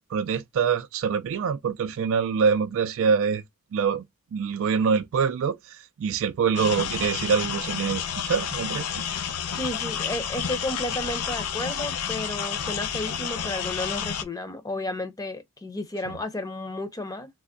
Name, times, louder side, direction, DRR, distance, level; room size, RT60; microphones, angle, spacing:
voice 1, 0.1-3.4 3.7-4.0 4.3-8.9, right 6 dB, 60° right, 0.3 m, -25 dB
sound 1, 6.6-14.2, left 8 dB, 90° left, 0.5 m, -30 dB
voice 2, 9.5-17.3, left 1 dB, 15° left, 0.6 m, -32 dB
3.4 x 2.1 x 3.7 m
head